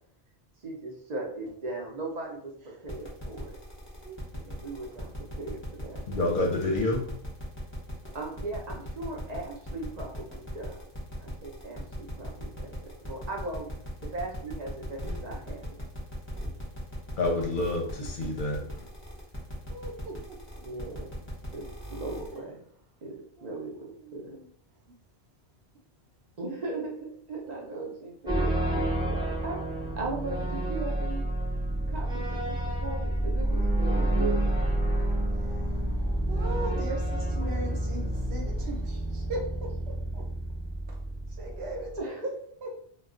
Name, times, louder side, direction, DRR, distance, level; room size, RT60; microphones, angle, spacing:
voice 1, 0.6-3.5 4.3-6.0 8.1-10.8 11.2-13.7 14.0-15.8 17.3-17.9 20.6-21.1 21.5-22.6 23.0-24.4 26.4-31.2 31.9-34.6 42.0-42.3, right 2 dB, 45° right, -1 dB, 0.7 m, -38 dB
sound 1, 2.9-22.4, equal, 15° left, 0.9 m, -41 dB
voice 2, 6.1-7.0 17.2-18.6, left 2 dB, 60° left, 0 dB, 0.7 m, -28 dB
voice 3, 18.0-18.3 19.7-20.4 23.4-24.5 35.3-35.7 36.3-40.2 40.9-41.0 41.4-42.3 42.6-42.7, right 2 dB, 75° right, -1 dB, 1.0 m, -39 dB
sound 2, 28.3-42.0, right 1 dB, 5° right, 0.4 m, -29 dB
2.3 x 2.2 x 3.6 m, 0.62 s
omnidirectional pair, 1.1 m